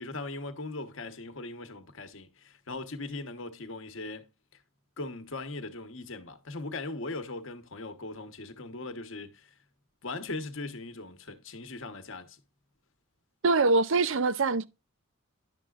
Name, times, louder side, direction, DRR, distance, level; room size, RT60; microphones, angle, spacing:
voice 1, 0.0-4.3 5.0-9.5 10.0-12.4, left 2 dB, 60° left, 1.0 m, -39 dB
voice 2, 13.4-14.7, right 3 dB, 60° right, 0.5 m, -24 dB
10.5 x 6.8 x 2.4 m
head